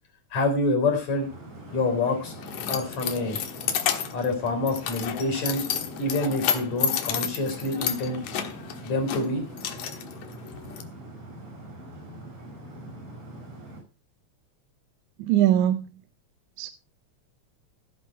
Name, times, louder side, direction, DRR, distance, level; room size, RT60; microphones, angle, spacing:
voice 1, 0.3-1.3 1.7-2.3 2.7-3.4 4.1-5.6 6.0-8.2 8.8-9.5, left 2 dB, 70° left, 5.1 m, -26 dB
sound 1, 1.1-13.8, right 1 dB, 55° right, 6.8 m, -43 dB
Keys jangling, 1.7-10.8, left 9 dB, 85° left, 2.8 m, -31 dB
voice 2, 15.2-15.9 16.6-16.7, right 12 dB, 85° right, 2.1 m, -21 dB
16.5 x 7.9 x 4.6 m
omnidirectional pair, 3.3 m